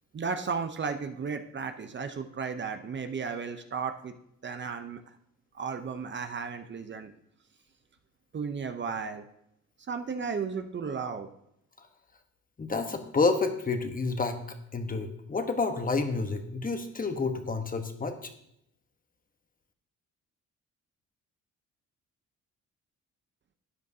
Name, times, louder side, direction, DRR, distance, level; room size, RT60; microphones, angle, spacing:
voice 1, 0.1-4.1 4.4-5.2 5.5-7.1 8.3-9.2 9.9-11.3, right 5 dB, 40° right, 7 dB, 0.7 m, -34 dB
voice 2, 12.6-14.4 14.7-18.3, left 4 dB, 30° left, 7 dB, 1.1 m, -29 dB
12.5 x 9.1 x 2.8 m, 0.76 s
cardioid pair, 90°, 30 cm